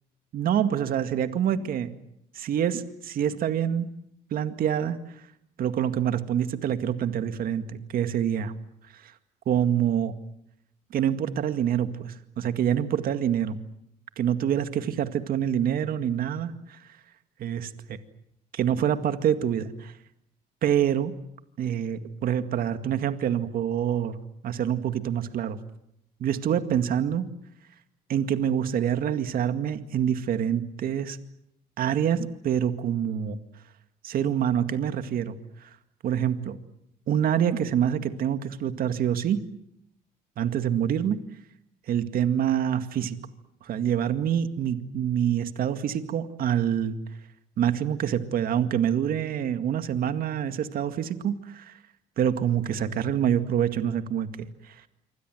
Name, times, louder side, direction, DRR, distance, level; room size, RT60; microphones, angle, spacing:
voice 1, 0.3-1.9 2.3-3.9 4.3-5.0 5.6-8.5 8.9-9.1 9.5-10.2 10.9-13.6 14.2-16.8 17.4-18.0 18.5-19.9 20.6-21.1 21.6-24.2 24.4-25.6 26.2-27.2 28.1-31.2 31.8-33.4 34.0-35.7 36.0-36.6 37.1-39.4 40.4-41.2 41.9-43.2 43.6-47.0 47.6-51.8 52.2-54.8, right 9 dB, 60° right, 9 dB, 2.1 m, -26 dB
27.0 x 25.0 x 7.8 m, 0.77 s
cardioid pair, 110°, 17 cm